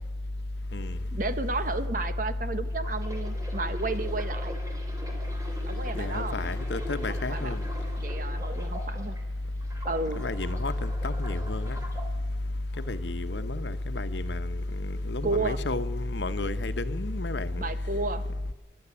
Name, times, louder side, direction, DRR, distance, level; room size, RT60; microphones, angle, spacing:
voice 1, 1.1-4.6 5.6-6.3 7.3-7.6 8.0-9.2 9.8-10.2 15.2-15.6 17.6-18.2, right 3 dB, 50° right, 1.1 m, -32 dB
sound 1, 2.7-9.2 9.6-12.1 12.7-13.0, equal, 20° right, 3.0 m, -43 dB
voice 2, 5.9-7.6 10.1-11.8 12.8-17.7, left 2 dB, 80° left, 1.1 m, -30 dB
25.5 x 11.5 x 9.9 m
head